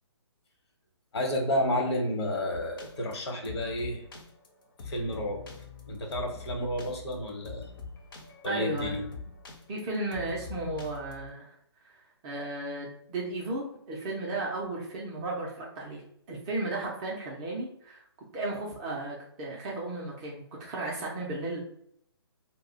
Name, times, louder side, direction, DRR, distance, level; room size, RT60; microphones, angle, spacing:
voice 1, 1.1-4.0 4.8-5.4 5.9-7.7 8.4-9.0, left 1 dB, 70° left, 2 dB, 0.9 m, -31 dB
sound 1, 2.5-11.3, left 4 dB, 50° left, 0.6 m, -44 dB
voice 2, 8.4-9.0 9.7-11.5 11.8-12.0 12.2-16.0 16.3-18.0 18.3-21.6, right 2 dB, 15° right, -3 dB, 0.3 m, -34 dB
2.3 x 2.0 x 3.7 m, 0.70 s
hypercardioid pair, 150°, 14 cm